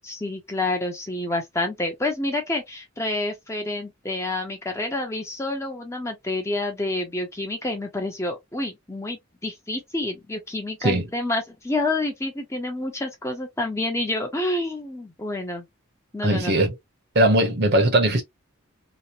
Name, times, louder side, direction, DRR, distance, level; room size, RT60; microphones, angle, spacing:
voice 1, 0.0-15.7 16.1-16.6, left 2 dB, 15° left, 0.6 m, -28 dB
voice 2, 16.2-16.7 17.1-18.2, right 1 dB, 50° right, 0.8 m, -19 dB
3.0 x 2.0 x 2.5 m
head